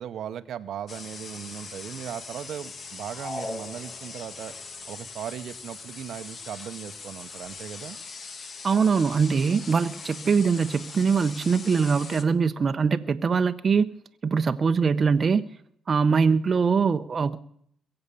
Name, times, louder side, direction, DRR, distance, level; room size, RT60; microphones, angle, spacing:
voice 1, 0.0-4.5 4.9-8.0, right 9 dB, 70° right, 0.8 m, -37 dB
sound 1, 0.9-12.2, left 4 dB, 45° left, 1.4 m, -41 dB
sound 2, 3.1-4.5, left 1 dB, 20° left, 6.0 m, -38 dB
voice 2, 8.6-13.9 14.2-15.4 15.9-17.4, right 5 dB, 40° right, 0.8 m, -22 dB
22.0 x 7.9 x 6.9 m
cardioid pair, 90°, 0 cm